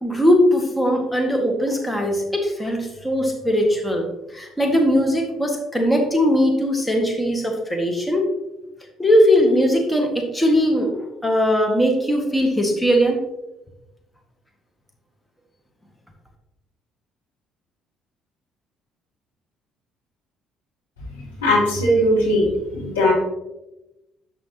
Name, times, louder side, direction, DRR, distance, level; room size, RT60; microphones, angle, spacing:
voice 1, 0.0-4.0 4.3-8.3 9.0-10.9 11.2-13.2, equal, 10° left, 2 dB, 1.8 m, -19 dB
voice 2, 21.4-22.5 22.7-23.1, left 1 dB, 80° left, -5 dB, 2.7 m, -18 dB
11.0 x 7.4 x 2.9 m, 0.97 s
figure-of-eight pair, 50°, 0 cm